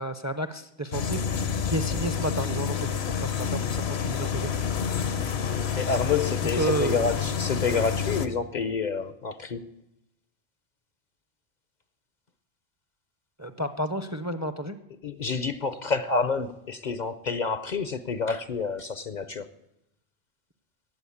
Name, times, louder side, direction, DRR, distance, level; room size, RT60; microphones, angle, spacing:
voice 1, 0.0-4.5 4.8-4.9 6.6-7.1 13.4-14.8, right 1 dB, 20° right, 10 dB, 0.6 m, -31 dB
sound 1, 0.9-8.3, left 7 dB, 70° left, 1.1 m, -28 dB
voice 2, 5.7-9.6 15.0-19.5, left 5 dB, 50° left, 12 dB, 0.7 m, -28 dB
15.0 x 8.9 x 8.5 m, 0.82 s
omnidirectional pair, 1.1 m